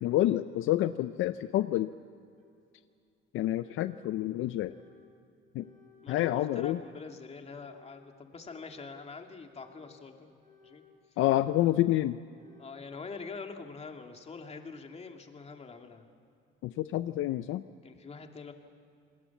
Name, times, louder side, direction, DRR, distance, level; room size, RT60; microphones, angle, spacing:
voice 1, 0.0-1.9 3.3-4.7 5.5-5.7 6.1-6.8 11.2-12.2 16.6-17.6, left 14 dB, 70° left, 12 dB, 0.6 m, -28 dB
sound 1, 1.4-1.5 2.4-2.5 3.4-4.1 4.6-5.1 5.5-6.1 6.5-7.1 7.5-8.0 8.5-9.0 9.4-10.0 10.4-10.9 11.4-11.9 12.4-12.9, left 7 dB, 35° right, 5.5 m, -60 dB
voice 2, 6.0-10.3 10.6-11.2 12.6-16.1 17.8-18.5, left 4 dB, 30° left, 3 dB, 2.6 m, -45 dB
28.5 x 20.0 x 7.3 m, 2.5 s
cardioid pair, 105°, 21 cm